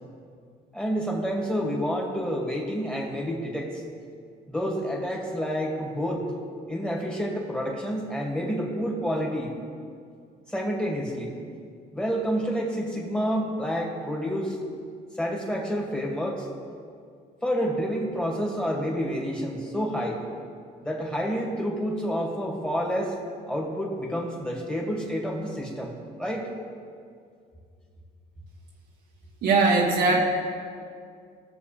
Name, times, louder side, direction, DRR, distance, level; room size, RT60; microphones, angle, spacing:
voice 1, 0.7-3.8 4.5-6.3 6.7-9.5 10.5-11.4 11.9-14.6 15.2-16.5 17.4-20.2 20.8-23.2 23.5-26.5, equal, 5° left, -1 dB, 2.3 m, -29 dB
voice 2, 29.4-30.2, right 3 dB, 75° right, -3 dB, 1.3 m, -20 dB
18.5 x 6.7 x 3.4 m, 2.2 s
cardioid pair, 110°, 17 cm